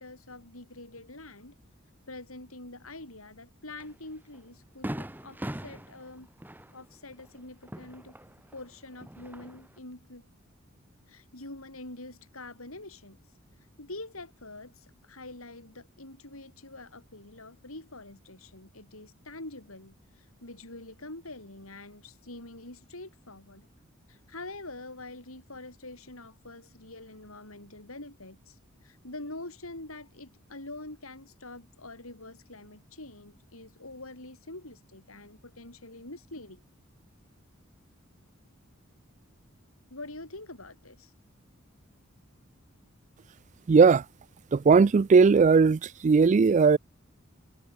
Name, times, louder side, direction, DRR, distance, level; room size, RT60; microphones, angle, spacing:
voice 1, 0.0-1.5 2.1-6.3 6.7-8.1 8.5-10.3 11.1-13.2 13.8-23.7 24.1-36.6 39.9-41.1, left 2 dB, 90° left, 7.4 m, -45 dB
Fireworks, 3.8-3.9 4.3-4.4 4.8-8.6 8.9-9.8, right 1 dB, 10° right, 1.3 m, -40 dB
voice 2, 43.7-44.0 44.5-46.8, right 5 dB, 35° right, 0.3 m, -18 dB
head